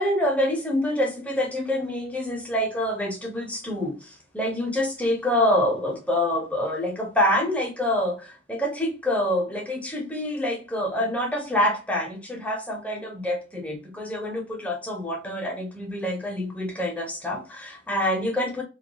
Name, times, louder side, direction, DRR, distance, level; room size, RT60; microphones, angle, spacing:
voice 1, 0.0-4.0 4.3-18.6, left 1 dB, 10° left, 0.6 m, -26 dB
2.3 x 2.2 x 2.7 m
head